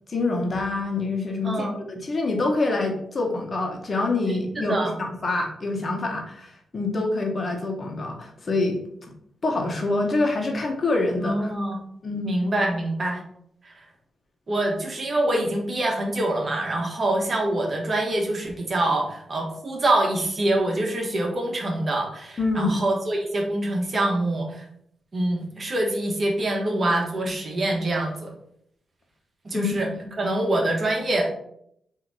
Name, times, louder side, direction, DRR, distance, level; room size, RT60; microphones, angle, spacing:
voice 1, 0.1-8.8 9.4-11.5 12.0-12.3 15.3-15.5 22.4-22.8 29.5-29.7, left 2 dB, 45° left, 1 dB, 1.1 m, -26 dB
voice 2, 1.4-1.7 4.5-4.9 11.2-11.8 12.2-13.2 13.6-13.7 14.5-24.6 25.1-28.3 29.4-29.9 30.2-31.3, right 1 dB, 45° right, 1 dB, 1.2 m, -25 dB
3.8 x 2.8 x 4.7 m, 0.71 s
supercardioid pair, 55°, 0 cm